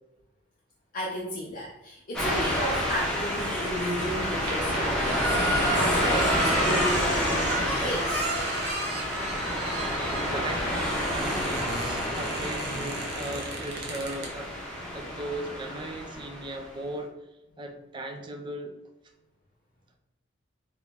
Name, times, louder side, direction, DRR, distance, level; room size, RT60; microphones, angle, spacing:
voice 1, 0.9-8.3, equal, 45° left, -4 dB, 0.5 m, -33 dB
sound 1, 2.1-16.6, equal, 5° left, 0.8 m, -29 dB
sound 2, 4.0-14.3, right 2 dB, 55° right, 0.7 m, -33 dB
voice 2, 9.9-14.6 14.9-17.1 17.6-18.8, right 1 dB, 25° right, 4 dB, 0.4 m, -37 dB
3.0 x 2.9 x 3.4 m, 0.90 s
head